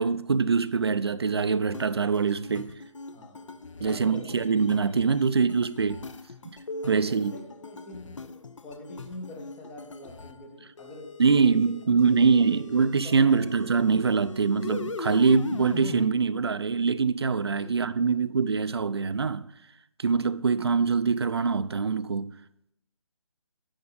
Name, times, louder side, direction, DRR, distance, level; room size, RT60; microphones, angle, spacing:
voice 1, 0.0-2.7 3.8-6.0 6.4-6.6 6.9-7.3 11.2-19.5 20.0-22.3, right 5 dB, 50° right, 0.5 m, -24 dB
sound 1, 1.7-10.4 10.8-16.1, left 3 dB, 65° left, 0.8 m, -40 dB
voice 2, 3.1-3.5 3.8-4.4 4.7-4.9 6.8-11.2 11.5-11.6 12.3-12.6 13.0-13.4 17.5-18.2, left 1 dB, 5° left, 0.5 m, -45 dB
9.6 x 8.8 x 4.0 m
figure-of-eight pair, 160°, 17 cm